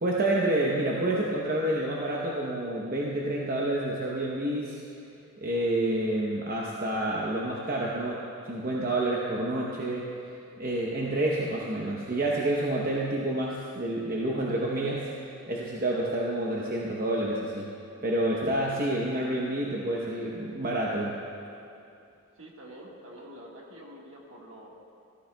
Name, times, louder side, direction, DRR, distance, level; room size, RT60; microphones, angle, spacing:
voice 1, 0.0-4.8 5.4-8.2 8.4-10.1 10.6-17.7 18.0-21.2, right 1 dB, 40° right, -4 dB, 0.8 m, -28 dB
voice 2, 22.3-24.8, equal, 60° right, -2 dB, 1.6 m, -47 dB
14.5 x 14.0 x 2.3 m, 2.6 s
head